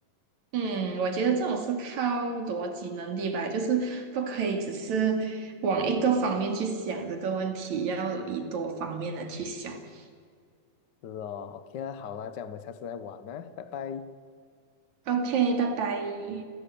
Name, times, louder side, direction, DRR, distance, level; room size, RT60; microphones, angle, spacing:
voice 1, 0.5-10.0 15.1-16.4, right 5 dB, 60° right, 5 dB, 3.7 m, -29 dB
voice 2, 11.0-14.1, left 7 dB, 70° left, 12 dB, 1.0 m, -38 dB
29.5 x 16.5 x 8.6 m, 2.1 s
omnidirectional pair, 3.8 m